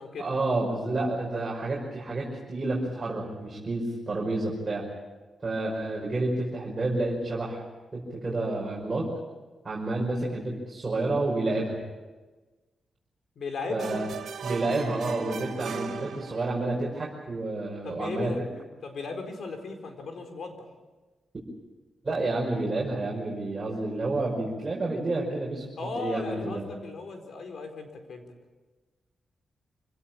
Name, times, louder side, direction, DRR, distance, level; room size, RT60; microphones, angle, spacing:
voice 1, 0.2-4.9 5.4-7.6 7.9-9.1 9.6-11.8 13.7-14.1 14.4-18.3 22.0-25.6 26.0-26.6, right 2 dB, 30° right, -4 dB, 5.6 m, -29 dB
voice 2, 13.4-14.0 17.8-20.7 25.8-28.2, left 4 dB, 65° left, 5 dB, 4.5 m, -37 dB
sound 1, 13.8-16.7, right 6 dB, 80° right, 2.7 m, -37 dB
27.0 x 18.0 x 8.9 m, 1.3 s
cardioid pair, 110°, 0 cm